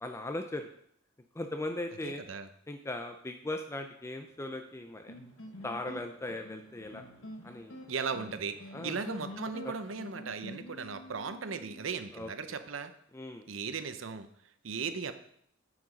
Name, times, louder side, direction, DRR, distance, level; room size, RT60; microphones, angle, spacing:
voice 1, 0.0-0.7 1.3-2.2 2.7-5.1 5.6-7.0 7.4-7.8 8.7-9.0 9.6-9.7 12.1-12.3 13.1-13.5, left 2 dB, 15° left, 6 dB, 0.5 m, -38 dB
voice 2, 2.0-2.5 7.9-12.9 13.5-14.3 14.6-15.1, right 5 dB, 80° right, 10 dB, 0.7 m, -37 dB
sound 1, 2.9-11.8, right 1 dB, 65° right, 2.4 m, -65 dB
sound 2, 5.1-12.1, left 1 dB, 75° left, 1.1 m, -47 dB
9.5 x 5.0 x 5.1 m, 0.68 s
head